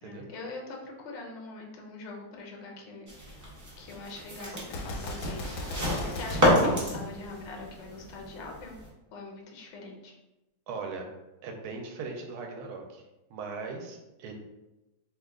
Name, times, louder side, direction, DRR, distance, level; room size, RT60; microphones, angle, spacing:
voice 1, 0.0-8.8 9.1-10.1, left 3 dB, 70° left, 0 dB, 0.6 m, -43 dB
sound 1, 3.1-8.9, equal, 20° right, 0.5 m, -30 dB
Gunshot gunfire, 4.6-7.7, left 1 dB, 85° left, 1.2 m, -38 dB
voice 2, 10.7-11.1 11.4-13.0 13.3-14.3, right 4 dB, 80° right, 2 dB, 1.1 m, -39 dB
3.0 x 2.3 x 3.5 m, 0.98 s
omnidirectional pair, 1.8 m